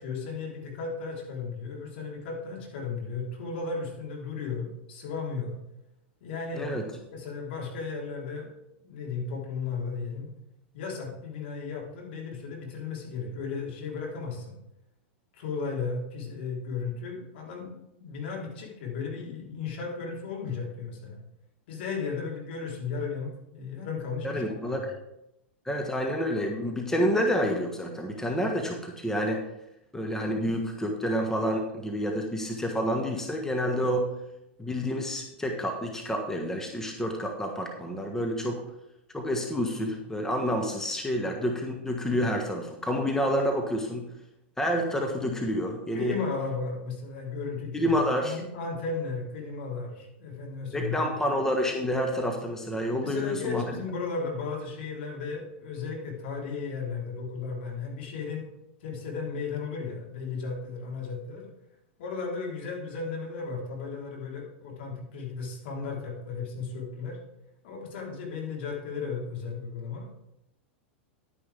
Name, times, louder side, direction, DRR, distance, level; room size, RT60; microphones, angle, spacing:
voice 1, 0.0-5.6 6.2-8.5 8.8-10.3 10.7-14.5 15.3-21.2 21.7-24.9 45.9-51.2 53.0-58.5 58.8-61.5 62.0-67.2 67.6-70.1, left 4 dB, 65° left, -2 dB, 3.9 m, -35 dB
voice 2, 24.2-24.8 25.6-29.4 29.9-34.1 34.6-38.6 39.1-44.1 44.6-46.2 47.7-48.4 50.7-53.7, equal, 5° left, 2 dB, 1.4 m, -28 dB
11.0 x 9.8 x 3.5 m, 0.86 s
hypercardioid pair, 100°, 6 cm